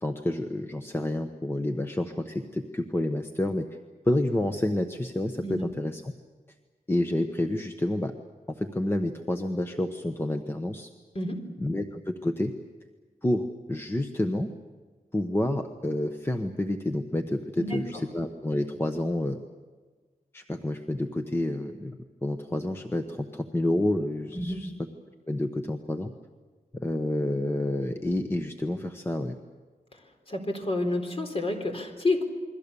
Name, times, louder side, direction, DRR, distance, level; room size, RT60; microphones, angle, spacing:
voice 1, 0.0-3.7 4.1-6.1 6.9-8.1 8.5-10.9 11.6-12.5 13.2-14.5 15.1-19.4 20.3-24.7 25.3-26.1 26.7-29.4, left 1 dB, 15° left, 6 dB, 1.1 m, -29 dB
voice 2, 17.6-18.0 24.3-24.6 29.9-30.0 30.3-32.2, left 2 dB, 40° left, 4 dB, 3.9 m, -29 dB
28.5 x 22.5 x 7.0 m, 1.4 s
wide cardioid pair, 140°, 15 cm